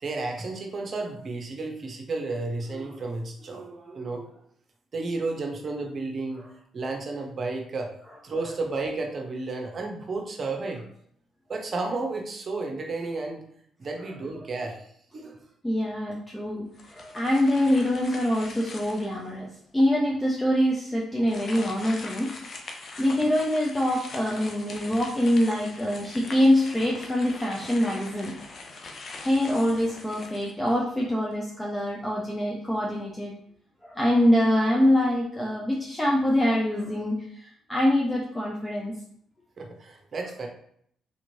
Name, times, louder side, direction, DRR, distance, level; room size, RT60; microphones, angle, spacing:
voice 1, 0.0-4.3 4.9-6.4 6.7-7.9 8.2-10.8 11.5-13.5 13.8-14.9 15.1-15.4 39.6-40.5, right 3 dB, 50° right, 2 dB, 0.8 m, -32 dB
voice 2, 15.6-19.5 19.7-22.3 23.0-28.4 29.2-33.3 33.8-38.9, left 1 dB, 15° left, -3 dB, 0.7 m, -24 dB
sound 1, 16.7-19.3 19.9-20.0 21.2-31.0, left 3 dB, 55° left, 0.6 m, -42 dB
3.5 x 2.9 x 2.7 m, 0.65 s
hypercardioid pair, 50°, 0 cm